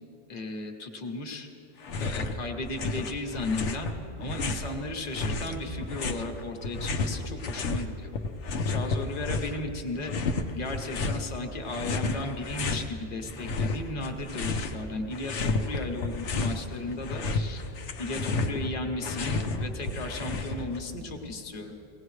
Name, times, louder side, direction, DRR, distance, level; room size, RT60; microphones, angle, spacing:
voice 1, 0.3-1.5 2.0-3.9 4.2-8.1 8.6-10.1 10.5-17.6 18.0-21.7, left 2 dB, 40° left, 3 dB, 1.1 m, -35 dB
sound 1, 1.8-2.4 2.6-4.7 5.2-7.9 8.1-9.6 10.0-11.2 11.7-12.9 13.3-14.8 15.1-16.6 16.9-20.8, left 3 dB, 90° left, 1.1 m, -31 dB
19.0 x 17.0 x 3.2 m, 3.0 s
omnidirectional pair, 1.2 m